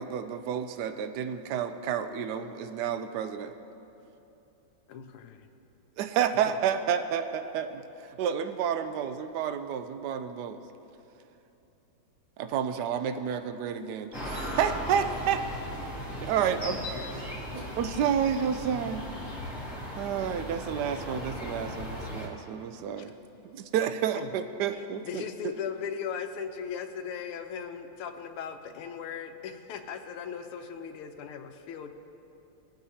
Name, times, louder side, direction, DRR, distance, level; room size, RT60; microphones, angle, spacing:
voice 1, 0.0-3.5 6.0-10.6 12.4-15.4 16.2-16.8 17.8-19.1 20.0-23.1 23.4-25.2, right 8 dB, 90° right, 9 dB, 0.9 m, -30 dB
voice 2, 4.9-5.5 16.9-17.1 23.0-23.1 24.2-24.3 24.7-31.9, left 7 dB, 85° left, 6 dB, 1.6 m, -38 dB
sound 1, 14.1-22.3, equal, 10° left, 2.0 m, -37 dB
voice 3, 16.3-17.8, right 2 dB, 65° right, -4 dB, 2.5 m, -46 dB
21.5 x 8.9 x 2.8 m, 2.9 s
omnidirectional pair, 2.3 m